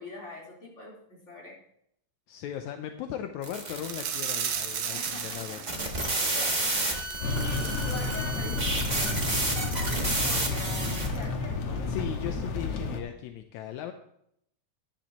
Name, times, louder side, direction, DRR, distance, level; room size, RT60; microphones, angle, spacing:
voice 1, 0.0-1.5 4.9-5.7 6.3-6.5 6.8-9.3 9.7-11.9, left 2 dB, 25° left, -4 dB, 4.0 m, -43 dB
voice 2, 2.3-5.6 11.9-13.9, left 10 dB, 80° left, 6 dB, 2.0 m, -37 dB
sound 1, 3.4-11.2, right 2 dB, 30° right, 0.8 m, -31 dB
sound 2, 3.8-8.8 9.1-9.3 9.7-9.8, right 8 dB, 70° right, 1.2 m, -36 dB
sound 3, 7.2-13.0, left 3 dB, 60° left, 2.1 m, -31 dB
13.0 x 10.5 x 3.0 m, 0.71 s
omnidirectional pair, 3.4 m